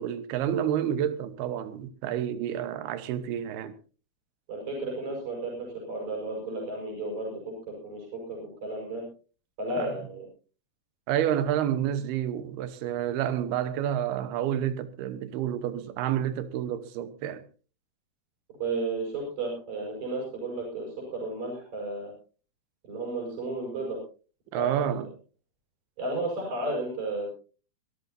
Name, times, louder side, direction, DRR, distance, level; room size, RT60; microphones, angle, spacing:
voice 1, 0.0-3.8 9.8-9.9 11.1-17.4 24.5-25.1, right 10 dB, 85° right, 3.1 m, -29 dB
voice 2, 4.5-7.4 7.7-9.0 9.6-10.3 18.5-22.1 22.8-24.0 24.5-25.0 26.0-27.3, right 2 dB, 50° right, 7.2 m, -33 dB
24.5 x 13.5 x 2.7 m
omnidirectional pair, 4.4 m